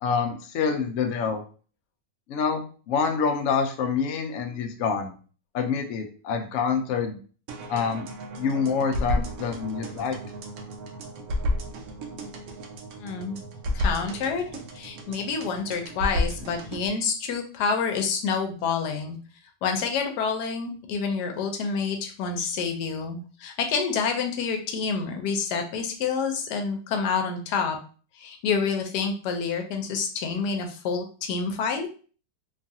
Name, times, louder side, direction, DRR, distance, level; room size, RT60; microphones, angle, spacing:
voice 1, 0.0-1.4 2.3-5.1 5.5-7.2 7.7-8.0 8.4-10.2, left 6 dB, 90° left, 4 dB, 0.7 m, -26 dB
sound 1, 7.5-16.9, left 1 dB, 70° right, 0.9 m, -32 dB
voice 2, 13.0-13.4 13.7-14.4 14.7-19.2 19.6-27.8 28.2-31.9, left 5 dB, 70° left, 4 dB, 1.1 m, -28 dB
3.1 x 2.3 x 2.6 m, 0.39 s
omnidirectional pair, 1.9 m